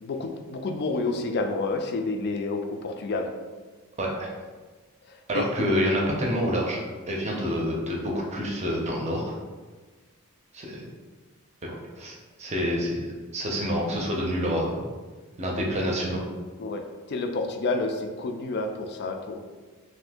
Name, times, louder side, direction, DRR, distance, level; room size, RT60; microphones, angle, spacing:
voice 1, 0.0-3.3 5.3-5.5 16.6-19.4, left 3 dB, 50° left, 5 dB, 0.3 m, -29 dB
voice 2, 4.0-4.3 5.3-6.8 7.1-9.3 10.5-10.8 11.6-13.1 13.3-14.8 15.4-16.2, equal, 30° right, -2 dB, 0.6 m, -27 dB
2.7 x 2.6 x 3.5 m, 1.4 s
head